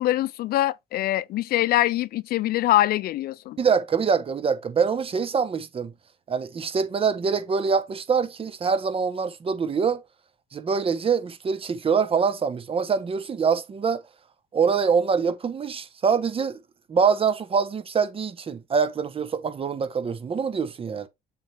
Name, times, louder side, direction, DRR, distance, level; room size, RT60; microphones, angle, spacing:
voice 1, 0.0-3.6, left 15 dB, 65° left, 0.4 m, -23 dB
voice 2, 3.6-5.9 6.3-10.0 10.5-14.0 14.5-16.6 16.9-21.1, right 6 dB, 35° right, 1.1 m, -24 dB
7.4 x 4.3 x 3.4 m
cardioid pair, 110°, 17 cm